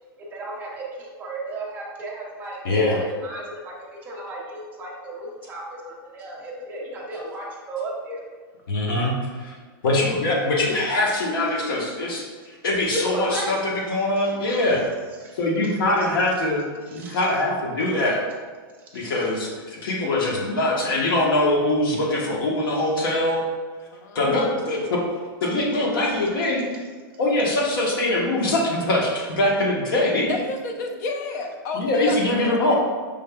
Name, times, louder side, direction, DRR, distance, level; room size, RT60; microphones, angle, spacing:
voice 1, 0.3-8.2 12.9-13.6 14.5-14.6 15.2-15.3 16.9-17.2 18.8-19.2, right 2 dB, 15° right, -4 dB, 0.6 m, -34 dB
voice 2, 2.6-3.0 8.7-9.6 9.8-12.2 12.6-14.8 15.3-16.6 16.9-18.2 18.9-23.4 24.1-25.0 25.4-26.7 27.2-30.3 31.7-32.8, left 1 dB, 70° left, -2 dB, 1.1 m, -23 dB
voice 3, 23.9-24.5 30.3-32.6, left 3 dB, 45° left, 4 dB, 0.5 m, -31 dB
5.2 x 3.5 x 2.2 m, 1.5 s
supercardioid pair, 170°, 12 cm